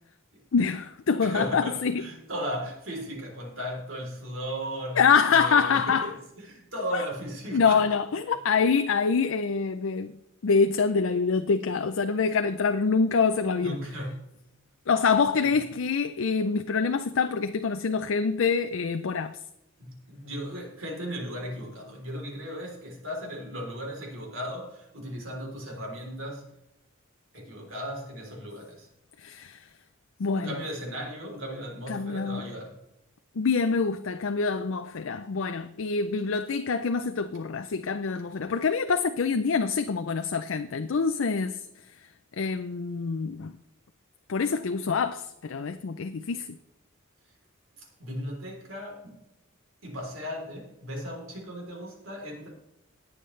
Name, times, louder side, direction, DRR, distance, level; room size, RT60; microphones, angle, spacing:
voice 1, 0.5-2.0 5.0-6.1 6.9-7.0 7.5-10.1 10.4-13.8 14.9-19.4 29.2-29.6 30.2-30.5 31.9-32.5 33.4-41.6 42.4-43.5 44.3-46.5, left 5 dB, 65° left, 0.5 m, -25 dB
voice 2, 1.2-7.9 13.5-14.4 15.4-15.5 19.8-26.5 27.3-28.9 30.3-32.8 47.8-49.2 49.8-52.5, equal, 65° right, 3.5 m, -36 dB
19.5 x 7.2 x 3.2 m
head